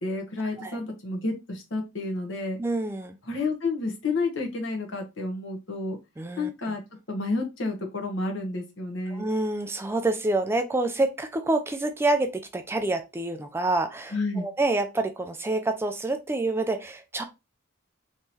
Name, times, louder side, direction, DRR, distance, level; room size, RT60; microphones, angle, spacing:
voice 1, 0.0-2.6 3.3-6.0 6.4-6.8 7.1-9.3 14.1-14.5, left 3 dB, 70° left, 2 dB, 1.1 m, -30 dB
voice 2, 2.6-3.2 6.2-6.7 9.1-17.2, right 2 dB, 10° right, 7 dB, 0.3 m, -27 dB
3.7 x 3.0 x 2.7 m, 0.25 s
head